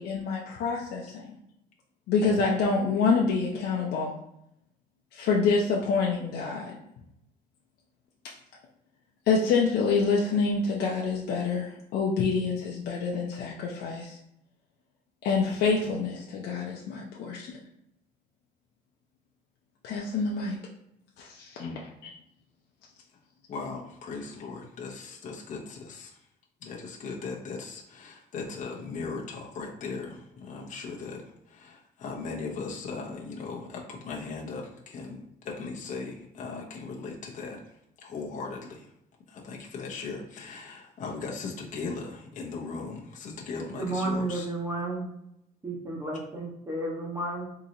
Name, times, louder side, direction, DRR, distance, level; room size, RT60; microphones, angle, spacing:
voice 1, 0.0-1.4 2.1-4.1 5.1-6.8 9.3-14.2 15.2-17.6 19.8-20.6 21.2-21.6, left 4 dB, 75° left, -2 dB, 0.6 m, -27 dB
voice 2, 23.5-26.3 26.6-37.6 38.0-38.9 39.3-44.5, left 4 dB, 50° left, -2 dB, 0.9 m, -38 dB
voice 3, 43.8-45.1 45.6-47.5, right 2 dB, 20° right, -2 dB, 1.2 m, -32 dB
3.8 x 2.9 x 2.7 m, 0.78 s
cardioid pair, 110°, 17 cm